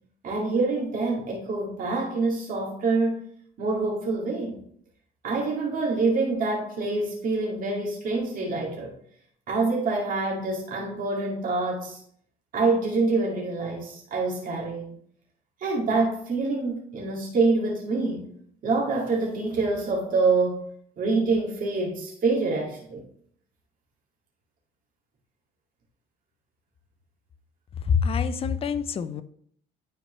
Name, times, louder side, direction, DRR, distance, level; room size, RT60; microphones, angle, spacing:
voice 1, 0.2-3.2 3.6-4.5 5.2-8.9 9.5-12.0 12.5-14.9 15.6-18.3 18.6-20.7 21.0-23.0, right 3 dB, 55° right, -2 dB, 2.1 m, -26 dB
voice 2, 27.8-29.2, left 6 dB, 35° left, 12 dB, 0.5 m, -25 dB
10.0 x 4.5 x 3.1 m, 0.62 s
cardioid pair, 110°, 17 cm